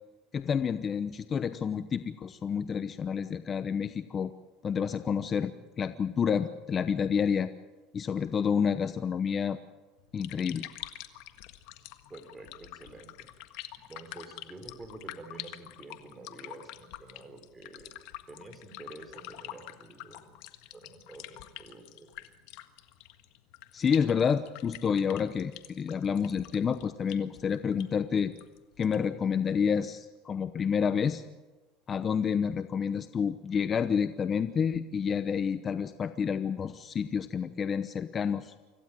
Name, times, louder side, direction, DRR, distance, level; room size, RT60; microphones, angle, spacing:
voice 1, 0.3-4.3 4.6-7.5 7.9-9.6 10.1-10.7 23.7-28.3 28.8-31.2 31.9-38.5, left 7 dB, 30° left, 11 dB, 0.9 m, -29 dB
sound 1, 10.0-29.1, left 15 dB, 70° left, 1.6 m, -47 dB
voice 2, 12.1-13.3 13.9-17.9 18.3-20.4 20.7-22.3, right 2 dB, 15° right, 6 dB, 4.4 m, -48 dB
26.0 x 16.0 x 9.1 m, 1.2 s
supercardioid pair, 120°, 0 cm